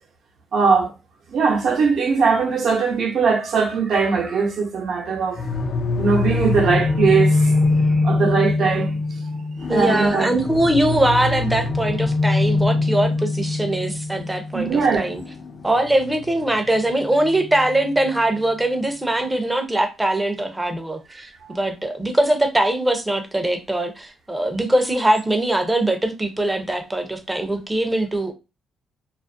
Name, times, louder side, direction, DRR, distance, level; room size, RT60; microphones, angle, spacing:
voice 1, 0.5-0.9 1.3-5.4 6.0-7.6 8.0-9.0 9.7-10.3 14.5-15.1 21.5-21.6, right 5 dB, 65° right, 0.8 m, -20 dB
sound 1, 5.4-18.1, left 3 dB, 55° left, 0.4 m, -23 dB
voice 2, 9.7-15.2 15.6-28.3, right 1 dB, 10° right, 0.6 m, -22 dB
2.4 x 2.0 x 2.5 m
cardioid pair, 90°, 0 cm